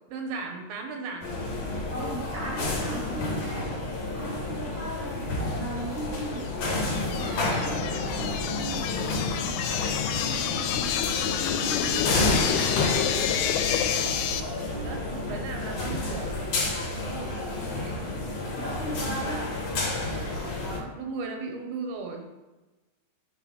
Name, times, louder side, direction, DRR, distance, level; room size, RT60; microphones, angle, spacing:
voice 1, 0.1-1.3 8.2-8.5 14.7-16.4 16.9-18.2 20.7-22.3, right 4 dB, 85° right, 3 dB, 2.7 m, -37 dB
sound 1, 1.2-20.8, left 2 dB, 70° left, 1.5 m, -30 dB
voice 2, 1.9-3.7 4.1-6.4 7.1-9.6 10.1-10.7 11.3-12.5 18.1-18.2 18.5-19.5, right 1 dB, 10° left, -8 dB, 0.9 m, -38 dB
sound 2, 6.4-14.4, left 9 dB, 90° left, 2.5 m, -28 dB
5.7 x 4.2 x 6.1 m, 1.1 s
omnidirectional pair, 4.5 m